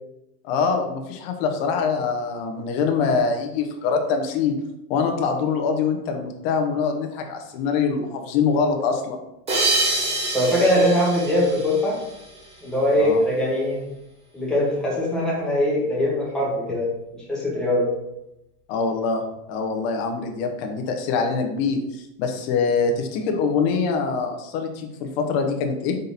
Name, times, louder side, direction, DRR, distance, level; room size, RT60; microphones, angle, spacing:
voice 1, 0.4-4.6 4.9-9.2 12.9-13.2 18.7-19.2 19.5-26.0, left 5 dB, 45° left, 4 dB, 0.7 m, -24 dB
sound 1, 9.5-12.6, right 2 dB, 15° right, 0.7 m, -26 dB
voice 2, 10.3-12.0 12.6-13.9 14.3-16.9 17.1-17.9, left 1 dB, ahead, -7 dB, 1.1 m, -21 dB
4.0 x 3.8 x 2.7 m, 0.88 s
supercardioid pair, 145°, 45 cm